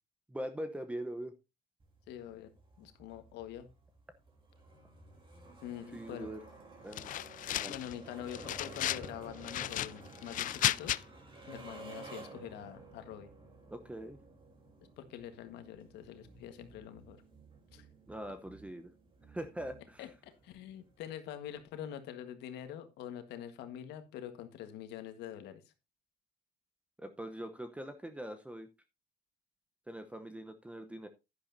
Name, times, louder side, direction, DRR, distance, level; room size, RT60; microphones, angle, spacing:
voice 1, 0.3-1.3 5.9-6.4 6.8-7.1 7.5-7.8 13.7-14.2 18.1-18.9 19.3-20.0 27.0-28.7 29.9-31.1, right 1 dB, 5° right, 8 dB, 0.9 m, -42 dB
sound 1, 1.8-21.1, right 2 dB, 30° right, 3.2 m, -53 dB
voice 2, 2.1-2.5 2.8-3.7 5.6-6.3 7.6-11.0 11.5-13.3 15.0-17.2 17.7-17.8 20.0-25.6, left 10 dB, 85° left, 9 dB, 1.6 m, -45 dB
sound 2, 6.9-7.9 8.3-9.1 9.4-11.0, left 13 dB, 50° left, 0.4 m, -34 dB
sound 3, 16.2-20.2, right 5 dB, 45° right, 2.9 m, -60 dB
10.5 x 10.5 x 2.7 m, 0.25 s
cardioid pair, 110°, 17 cm